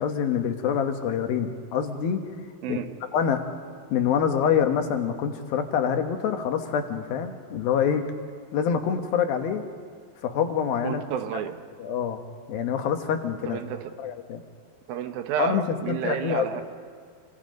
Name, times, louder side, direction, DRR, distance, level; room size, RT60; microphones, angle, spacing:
voice 1, 0.0-2.2 2.7-2.8 3.1-3.4 3.9-8.1 8.5-9.6 10.2-11.0 11.8-12.2 12.5-13.6 14.0-14.4 15.4-16.5, left 7 dB, 75° left, 6 dB, 3.1 m, -26 dB
voice 2, 10.8-11.6 13.5-13.9 14.9-16.6, right 9 dB, 75° right, 8 dB, 2.8 m, -30 dB
27.5 x 25.0 x 5.3 m, 2.1 s
omnidirectional pair, 4.3 m